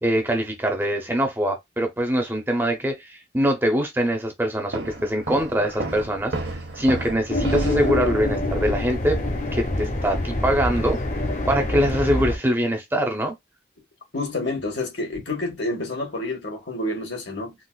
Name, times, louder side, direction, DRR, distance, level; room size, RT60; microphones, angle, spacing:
voice 1, 0.0-6.3 6.8-9.2 9.5-11.0 11.5-13.3, equal, 10° right, 0.6 m, -23 dB
Walk footsteps, 4.7-8.0, right 2 dB, 80° right, 0.9 m, -31 dB
sound 1, 7.3-12.4, left 1 dB, 45° left, 0.8 m, -25 dB
voice 2, 14.1-17.5, left 2 dB, 80° left, 1.4 m, -28 dB
3.8 x 2.4 x 2.2 m
head